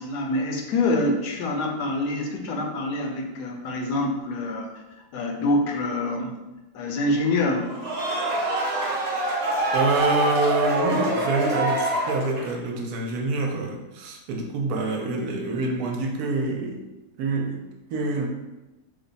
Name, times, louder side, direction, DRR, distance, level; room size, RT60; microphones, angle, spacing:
voice 1, 0.0-4.7 5.1-6.4 6.7-7.7, left 2 dB, 85° left, 1 dB, 1.2 m, -26 dB
sound 1, 7.6-12.7, right 2 dB, 50° right, 0.8 m, -25 dB
voice 2, 9.7-16.8 17.2-18.3, right 2 dB, 75° right, 1 dB, 1.1 m, -26 dB
3.1 x 2.2 x 3.9 m, 1.0 s
omnidirectional pair, 1.7 m